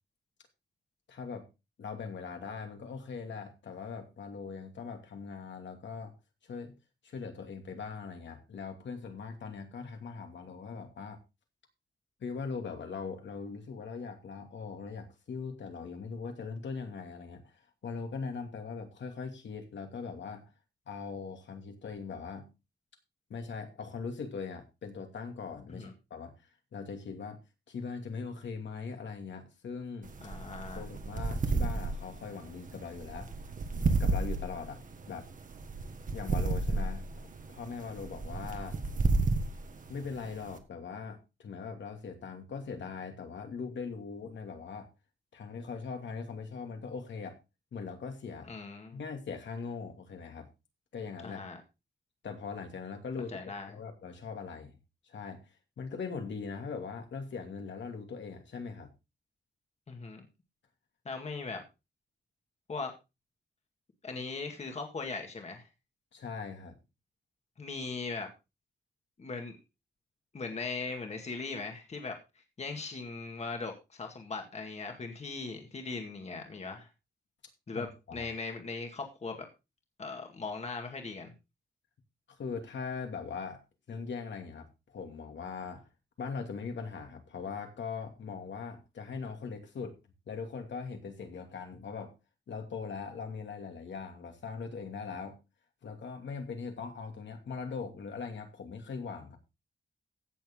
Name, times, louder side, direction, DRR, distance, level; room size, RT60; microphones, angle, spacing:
voice 1, 1.1-1.5 1.8-6.1 6.4-6.7 7.0-11.2 12.2-20.5 20.9-22.5 23.3-26.3 26.7-27.4 27.7-30.1 30.8-33.3 33.7-34.8 35.1-35.3 36.1-38.8 39.9-44.9 45.3-47.4 47.7-48.5 48.9-50.5 50.9-51.4 52.2-53.4 53.7-54.8 55.1-55.4 55.8-58.9 66.1-66.8 77.7-78.3 82.4-83.6 83.9-85.9 86.2-90.0 90.3-92.1 92.5-95.4 95.8-99.4, left 5 dB, 70° left, 4 dB, 2.7 m, -40 dB
sound 1, 30.0-40.6, right 3 dB, 45° right, 1.6 m, -32 dB
voice 2, 30.2-30.8 48.4-49.0 51.2-51.6 53.3-53.8 59.9-60.2 61.1-61.6 62.7-62.9 64.0-65.7 67.6-68.3 69.2-69.6 70.3-76.9 77.7-77.9 78.1-79.5 80.0-81.3, left 4 dB, 35° left, 4 dB, 2.0 m, -39 dB
16.0 x 7.1 x 3.7 m, 0.27 s
wide cardioid pair, 165°, 20 cm